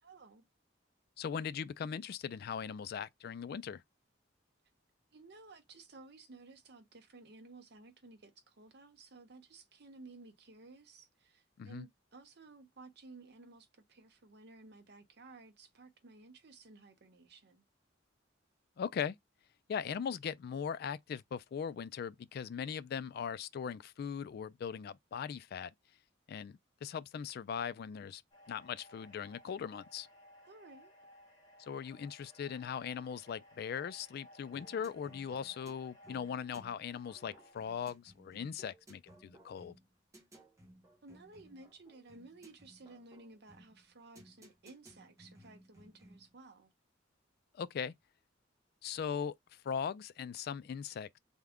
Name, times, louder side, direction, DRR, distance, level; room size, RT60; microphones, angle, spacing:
voice 1, 0.0-0.4 5.1-17.6 30.4-30.9 41.0-46.7, right 3 dB, 60° right, 0.8 m, -56 dB
voice 2, 1.2-3.8 11.6-11.8 18.8-19.2 19.7-25.7 26.3-28.2 28.5-30.1 31.6-39.7 47.5-47.9 48.8-49.3 49.6-51.2, left 7 dB, 55° left, 0.3 m, -39 dB
sound 1, 28.3-37.7, left 1 dB, 20° left, 1.6 m, -60 dB
sound 2, 34.5-46.3, right 1 dB, 15° right, 0.8 m, -60 dB
3.5 x 2.1 x 3.5 m
head